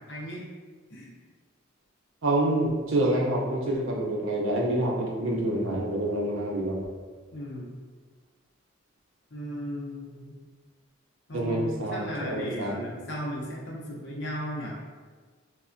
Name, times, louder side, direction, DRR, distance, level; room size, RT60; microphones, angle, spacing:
voice 1, 0.1-0.5 0.9-1.1 7.3-7.8 9.3-10.4 11.3-14.8, equal, 60° left, -3 dB, 0.6 m, -36 dB
voice 2, 2.2-6.8 11.3-12.8, right 1 dB, 80° right, -1 dB, 0.5 m, -27 dB
3.2 x 2.1 x 2.5 m, 1.4 s
head